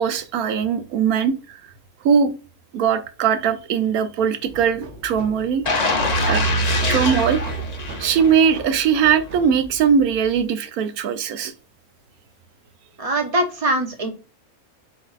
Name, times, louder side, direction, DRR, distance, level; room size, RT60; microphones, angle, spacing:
voice 1, 0.0-1.6 2.0-2.3 2.7-5.6 6.3-6.4 6.9-7.4 8.0-11.5, right 7 dB, 90° right, 1.1 m, -20 dB
sound 1, 4.4-10.5, right 2 dB, 55° right, 1.0 m, -38 dB
sound 2, 5.7-8.6 9.0-9.2, left 1 dB, 40° left, 0.6 m, -23 dB
voice 2, 13.0-14.1, right 1 dB, 30° right, 0.7 m, -22 dB
7.8 x 2.6 x 2.4 m
omnidirectional pair, 1.5 m